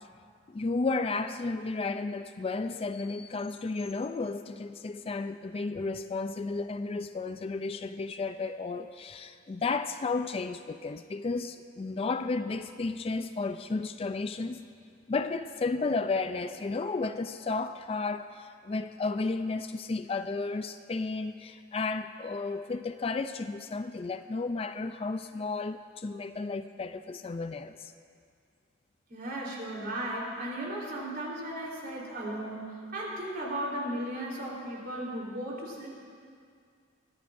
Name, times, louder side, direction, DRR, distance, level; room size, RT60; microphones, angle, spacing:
voice 1, 0.5-14.6 15.1-27.9, left 3 dB, 30° left, 0.4 m, -33 dB
voice 2, 29.1-35.9, right 1 dB, 55° right, 3.6 m, -36 dB
22.5 x 15.0 x 2.6 m
head